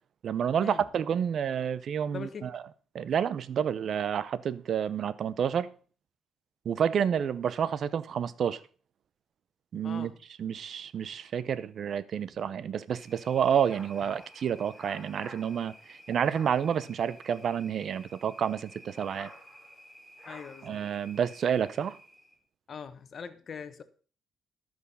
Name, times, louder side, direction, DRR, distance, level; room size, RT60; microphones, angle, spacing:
voice 1, 0.2-2.6 2.9-5.7 6.6-8.6 9.7-10.1 10.4-19.3 20.6-22.0, right 8 dB, 60° right, 0.7 m, -29 dB
voice 2, 2.1-2.6 9.8-10.2 20.2-20.8 22.7-23.8, left 6 dB, 50° left, 1.1 m, -42 dB
sound 1, 12.9-22.4, equal, 5° left, 2.8 m, -51 dB
12.5 x 6.2 x 5.5 m
cardioid pair, 90°, 0 cm